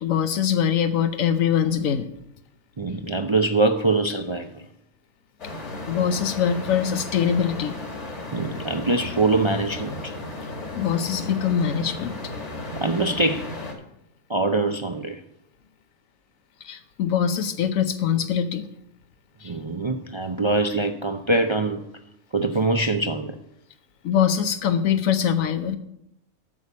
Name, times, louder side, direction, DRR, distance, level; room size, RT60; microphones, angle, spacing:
voice 1, 0.0-2.1 5.9-7.8 10.8-12.2 16.6-18.6 19.4-19.5 24.0-25.8, left 8 dB, 80° left, 8 dB, 1.1 m, -23 dB
voice 2, 2.8-4.6 8.3-10.1 12.8-13.5 14.3-15.2 19.4-21.9 22.3-23.4, right 2 dB, 45° right, 6 dB, 0.3 m, -23 dB
sound 1, 5.4-13.7, left 2 dB, 60° left, 2.2 m, -35 dB
8.5 x 6.8 x 8.3 m, 0.80 s
omnidirectional pair, 1.4 m